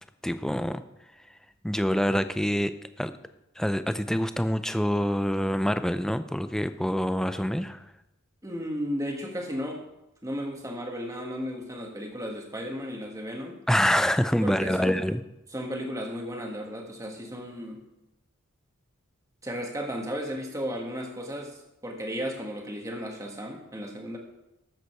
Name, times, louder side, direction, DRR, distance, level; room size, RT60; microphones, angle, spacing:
voice 1, 0.2-0.8 1.6-3.1 3.6-7.8 13.7-15.2, equal, ahead, 11 dB, 0.4 m, -26 dB
voice 2, 8.4-9.8 10.2-13.6 14.4-15.0 15.5-17.8 19.4-24.2, equal, 15° right, 1 dB, 1.7 m, -34 dB
13.0 x 8.0 x 4.6 m, 0.91 s
head